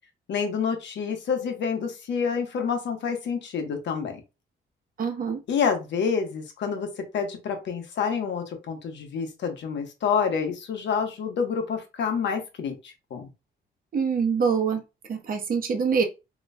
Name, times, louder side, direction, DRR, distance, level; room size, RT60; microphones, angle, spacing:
voice 1, 0.3-4.2 5.5-6.9 7.1-13.3, left 6 dB, 65° left, 1.0 m, -28 dB
voice 2, 5.0-5.4 13.9-14.8 15.1-16.1, right 6 dB, 45° right, 0.9 m, -24 dB
3.9 x 2.9 x 2.2 m
cardioid pair, 90°, 20 cm